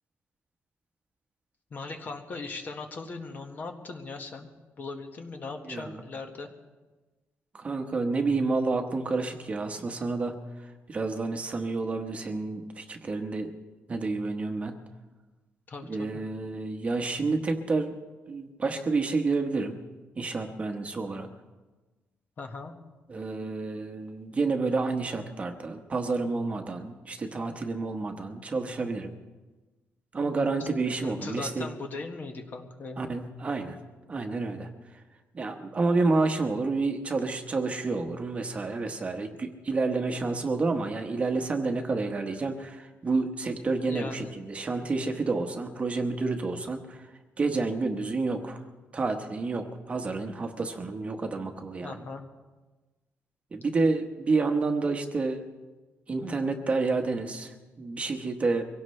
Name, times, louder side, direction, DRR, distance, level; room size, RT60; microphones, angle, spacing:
voice 1, 1.7-4.5 4.8-6.5 15.7-16.2 22.4-22.7 30.6-30.7 31.0-33.1 43.9-44.3 51.8-52.2, left 3 dB, 40° left, 4 dB, 1.6 m, -39 dB
voice 2, 7.5-10.3 10.9-13.5 13.9-14.8 15.9-18.0 18.3-19.8 20.2-21.3 23.1-29.1 30.1-31.7 33.0-33.8 34.1-34.7 35.3-47.1 47.4-48.6 48.9-52.0 53.5-55.4 56.1-58.6, right 3 dB, 25° right, 5 dB, 1.1 m, -29 dB
24.0 x 17.0 x 3.3 m, 1.2 s
cardioid pair, 160°, 5 cm